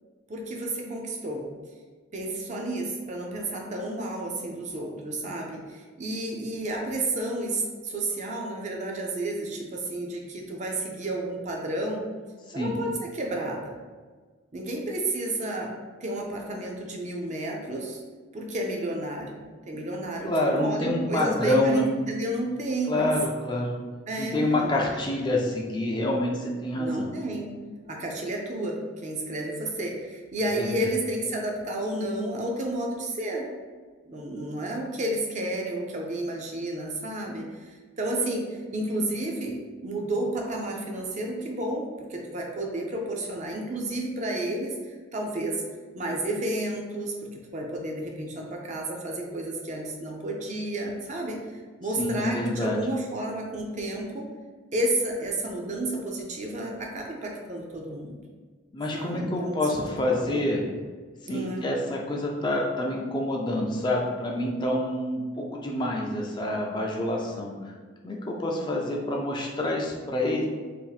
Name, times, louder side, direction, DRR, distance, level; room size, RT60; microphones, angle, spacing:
voice 1, 0.3-1.5 2.1-12.0 12.5-13.8 14.5-15.7 16.0-18.0 18.3-23.1 24.1-25.0 26.8-27.5 27.9-33.5 34.0-45.6 45.9-54.3 54.7-58.2 58.9-59.6 59.9-60.4 61.3-61.7, right 1 dB, 35° right, 0 dB, 0.5 m, -31 dB
voice 2, 20.2-21.9 22.9-23.7 24.2-27.2 30.6-30.7 52.0-52.8 58.7-60.6 61.2-67.5 68.0-70.5, left 1 dB, 25° left, -1 dB, 0.3 m, -27 dB
2.7 x 2.5 x 4.0 m, 1.5 s
head